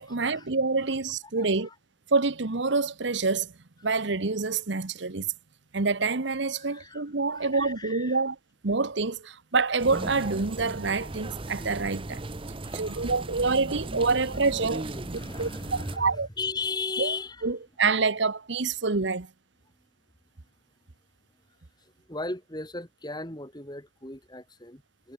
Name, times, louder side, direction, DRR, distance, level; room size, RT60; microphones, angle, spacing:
voice 1, 0.0-1.7 2.1-3.5 3.8-5.3 5.7-8.3 8.6-12.2 12.7-14.9 15.4-16.3 17.0-17.1 17.4-19.3, right 4 dB, 65° right, 1.1 m, -27 dB
voice 2, 1.4-1.7 6.6-7.0 7.3-8.2 12.5-13.1 14.9-17.6 21.8-25.1, left 3 dB, 20° left, 4.8 m, -37 dB
sound 1, 9.8-16.0, right 2 dB, 25° right, 0.8 m, -37 dB
head